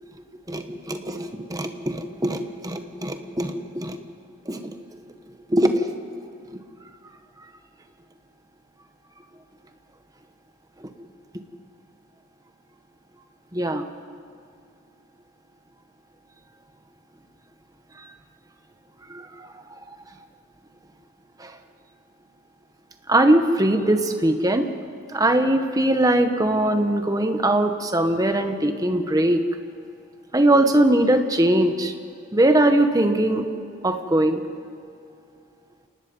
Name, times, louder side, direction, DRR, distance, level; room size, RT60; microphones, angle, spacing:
voice 1, 0.5-4.0 4.5-4.8 5.5-5.9 6.5-6.6 13.5-13.9 19.1-19.6 21.4-21.5 23.1-24.7 25.1-29.4 30.3-31.9 32.3-33.5 33.8-34.4, right 1 dB, 15° right, 7 dB, 1.2 m, -21 dB
27.5 x 19.0 x 5.4 m, 2.5 s
head